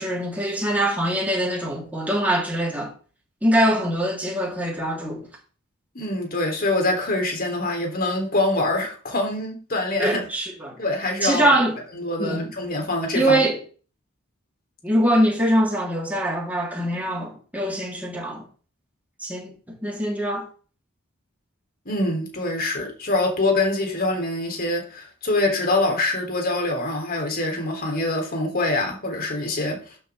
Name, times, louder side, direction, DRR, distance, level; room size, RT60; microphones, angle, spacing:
voice 1, 0.0-2.9 3.4-5.3 10.0-10.8 11.2-11.8 12.2-12.5 13.1-13.6 14.8-18.5 19.2-20.5, right 1 dB, 10° right, 3.7 m, -23 dB
voice 2, 6.0-10.2 10.8-11.5 12.0-13.4 21.9-29.8, left 2 dB, 50° left, 3.4 m, -24 dB
12.0 x 8.1 x 3.6 m
head